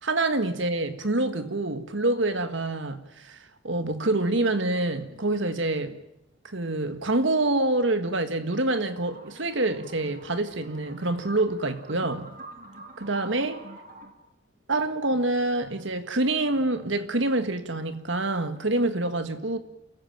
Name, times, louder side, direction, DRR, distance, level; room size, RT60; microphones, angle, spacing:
voice 1, 0.0-3.4 3.6-6.0 6.4-12.3 13.0-13.6 14.7-19.6, right 2 dB, 65° right, 1.8 m, -26 dB
sound 1, 9.0-14.1, right 2 dB, 40° right, 2.6 m, -46 dB
28.0 x 15.5 x 8.9 m
head